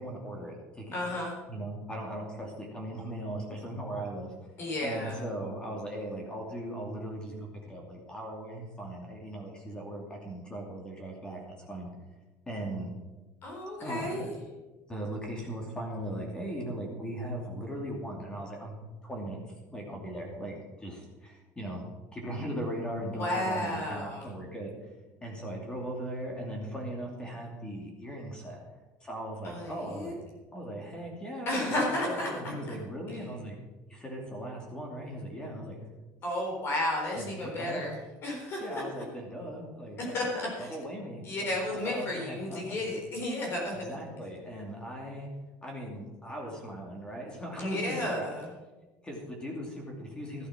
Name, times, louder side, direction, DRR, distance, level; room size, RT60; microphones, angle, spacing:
voice 1, 0.0-1.1 1.5-4.3 4.8-11.9 12.5-12.9 13.8-14.3 14.9-18.8 19.0-19.4 19.7-21.8 22.1-24.7 25.2-28.6 29.0-30.2 30.5-33.5 33.9-35.8 37.2-37.8 38.6-40.2 40.6-42.9 43.8-45.3 45.6-48.3 49.0-50.5, right 1 dB, 15° left, 0 dB, 2.7 m, -38 dB
voice 2, 0.9-1.4 4.6-5.2 13.4-14.3 23.1-24.3 29.4-30.1 31.5-32.8 33.1-33.2 36.2-37.9 38.2-39.0 40.0-40.8 41.2-43.9 47.6-48.5, left 1 dB, 40° left, -1 dB, 4.0 m, -33 dB
14.0 x 8.8 x 6.0 m, 1.2 s
cardioid pair, 140°, 6 cm